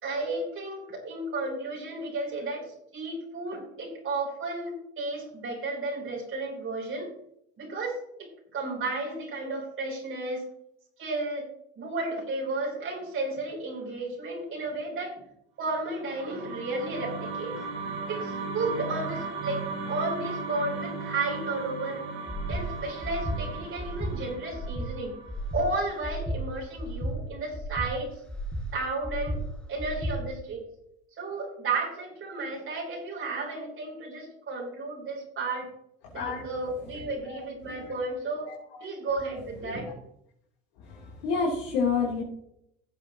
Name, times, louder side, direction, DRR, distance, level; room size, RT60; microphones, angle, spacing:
voice 1, 0.0-7.1 7.6-10.4 11.0-11.5 11.8-15.1 15.6-17.6 18.1-22.0 22.5-25.1 25.5-28.1 28.7-29.4 29.7-30.6 31.2-35.7 36.1-38.5 38.8-39.9, right 2 dB, 40° right, -1 dB, 3.5 m, -33 dB
sound 1, 15.9-26.2, right 4 dB, 80° right, 4.7 m, -37 dB
Breathing, 22.3-22.6 23.0-23.4 23.8-24.1 24.5-24.9 25.3-25.6 26.0-26.4 26.8-27.1 27.5-27.9 28.3-28.6 29.0-29.4 29.8-30.1, equal, 5° left, 2.2 m, -33 dB
voice 2, 36.0-36.4 36.9-37.9 38.5-38.9 39.6-39.8 40.8-42.2, left 5 dB, 85° left, -5 dB, 3.3 m, -31 dB
17.0 x 7.3 x 3.0 m, 0.75 s
supercardioid pair, 100°, 32 cm